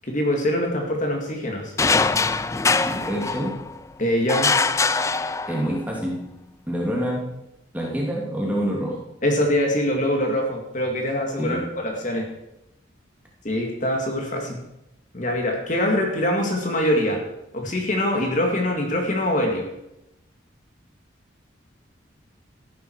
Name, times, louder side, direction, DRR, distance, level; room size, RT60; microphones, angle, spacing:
voice 1, 0.0-1.7 4.0-4.5 9.2-12.3 13.4-14.6 15.1-17.2 17.5-19.7, left 1 dB, 40° left, 1 dB, 2.1 m, -23 dB
sound 1, 1.8-3.8 4.3-5.8, left 4 dB, 15° left, 0.3 m, -22 dB
voice 2, 2.9-3.6 5.5-6.2 6.7-7.2 7.7-9.0 11.4-11.6, equal, 10° right, -2 dB, 2.7 m, -26 dB
14.0 x 11.5 x 4.7 m, 0.84 s
head